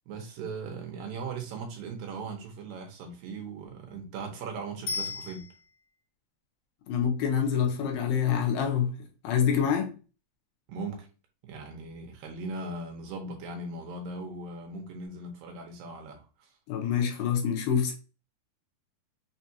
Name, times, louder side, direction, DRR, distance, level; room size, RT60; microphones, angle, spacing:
voice 1, 0.1-5.5 10.7-11.1 11.4-16.5, right 3 dB, 75° right, 2.5 m, -39 dB
Bicycle bell, 4.9-6.0 15.1-15.2, left 4 dB, 60° left, 2.1 m, -36 dB
voice 2, 6.9-10.0 16.7-17.9, left 7 dB, 75° left, 2.4 m, -26 dB
6.0 x 2.4 x 2.7 m
omnidirectional pair, 4.3 m